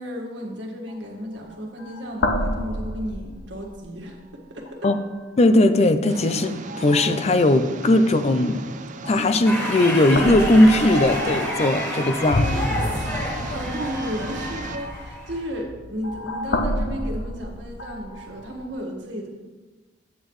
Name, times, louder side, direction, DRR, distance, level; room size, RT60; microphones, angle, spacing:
voice 1, 0.0-4.9 12.4-19.3, equal, 80° right, -1 dB, 1.6 m, -34 dB
sound 1, 0.9-1.0 1.4-1.5 1.8-4.1 4.7-5.2 6.0-6.3 6.7-7.5 9.0-9.5 10.1-18.7, left 1 dB, 70° left, 0.7 m, -30 dB
voice 2, 5.4-8.6 9.0-12.4, left 1 dB, 35° left, 10 dB, 0.5 m, -18 dB
Engine, 6.1-14.8, right 3 dB, 45° right, 0.5 m, -37 dB
sound 2, 9.4-15.6, left 1 dB, 15° left, 1.5 m, -29 dB
9.0 x 8.2 x 3.1 m, 1.3 s
head